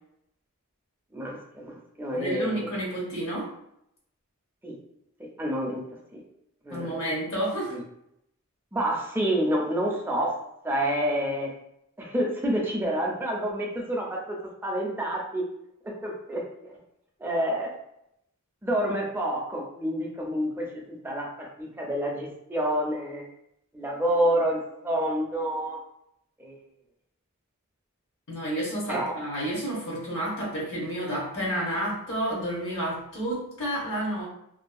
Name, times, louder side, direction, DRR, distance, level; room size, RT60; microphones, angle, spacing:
voice 1, 1.1-2.7 4.6-4.8 5.2-5.8 6.1-6.2 6.6-7.0 7.6-7.8 8.7-10.4 10.6-11.5 12.0-14.4 14.6-15.4 15.8-16.7 17.2-17.8 18.6-23.2 23.7-25.8 26.4-26.6 28.9-29.2, right 1 dB, 10° right, -2 dB, 0.4 m, -28 dB
voice 2, 2.1-3.5 6.7-7.8 28.3-34.3, right 1 dB, 60° left, -4 dB, 0.8 m, -30 dB
2.6 x 2.3 x 2.3 m, 0.78 s
head